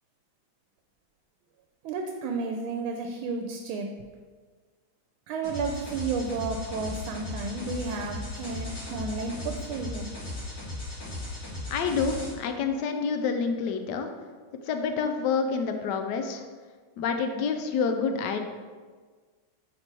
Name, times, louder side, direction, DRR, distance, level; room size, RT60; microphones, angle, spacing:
voice 1, 1.8-3.9 5.3-10.1, right 4 dB, 80° right, 3 dB, 1.4 m, -32 dB
sound 1, 5.4-12.3, left 2 dB, 55° left, 2.7 m, -37 dB
voice 2, 11.7-14.1 14.7-16.4 17.0-18.4, left 5 dB, 75° left, 6 dB, 1.0 m, -28 dB
5.2 x 4.6 x 4.4 m, 1.5 s
omnidirectional pair, 2.2 m